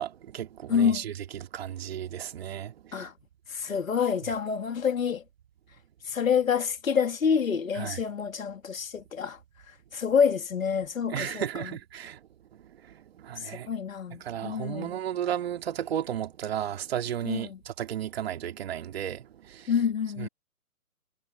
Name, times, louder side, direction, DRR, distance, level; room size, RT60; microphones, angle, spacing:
voice 1, 0.0-3.1 7.7-8.0 11.1-12.2 12.5-13.7 14.2-19.7 20.2-20.3, right 10 dB, 40° right, 2.7 m, -34 dB
voice 2, 0.7-1.0 2.9-3.1 3.5-5.2 6.0-9.4 9.9-11.7 13.4-14.9 17.2-17.6 19.7-20.3, left 7 dB, 60° left, 3.2 m, -27 dB
figure-of-eight pair, 140°, 45 cm